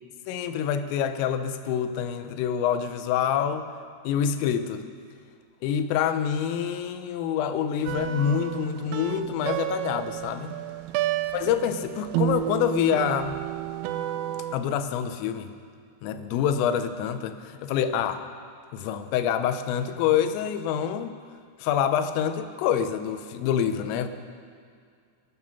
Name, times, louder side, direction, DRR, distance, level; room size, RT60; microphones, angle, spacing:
voice 1, 0.3-3.7 4.0-4.8 5.6-10.6 11.3-13.4 14.5-15.5 16.0-18.2 18.7-21.2 21.6-24.1, left 8 dB, 85° left, 10 dB, 3.4 m, -26 dB
sound 1, 7.9-14.6, right 11 dB, 85° right, 3.2 m, -31 dB
21.5 x 9.6 x 5.7 m, 2.2 s
omnidirectional pair, 5.7 m